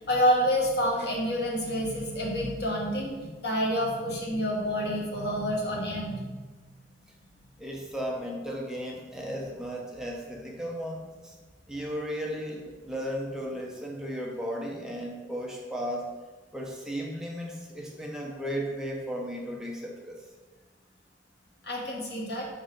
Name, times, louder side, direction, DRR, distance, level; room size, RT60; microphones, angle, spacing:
voice 1, 0.1-6.2 21.6-22.4, equal, 65° left, -2 dB, 1.4 m, -28 dB
voice 2, 7.6-11.3 11.7-16.1 16.5-20.2, equal, 5° right, -2 dB, 0.6 m, -35 dB
5.2 x 4.0 x 5.1 m, 1.3 s
head